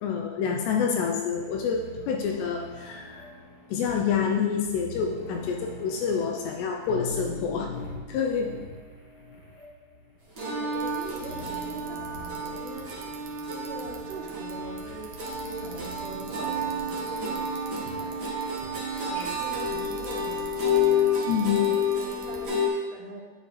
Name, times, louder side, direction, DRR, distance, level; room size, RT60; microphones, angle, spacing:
voice 1, 0.0-3.3 3.7-7.7 8.1-8.5 21.2-21.7, left 6 dB, 85° left, 1 dB, 2.6 m, -27 dB
sound 1, 1.3-20.9, left 2 dB, 65° left, 1.7 m, -44 dB
sound 2, 10.4-22.7, left 3 dB, 55° right, 1.1 m, -30 dB
voice 2, 10.4-12.9 13.5-18.2 19.1-21.1 21.6-23.2, right 2 dB, 90° right, -1 dB, 3.9 m, -42 dB
Bicycle, 10.7-22.5, right 4 dB, 70° right, 2.1 m, -48 dB
10.0 x 8.5 x 3.2 m, 1.4 s
omnidirectional pair, 5.4 m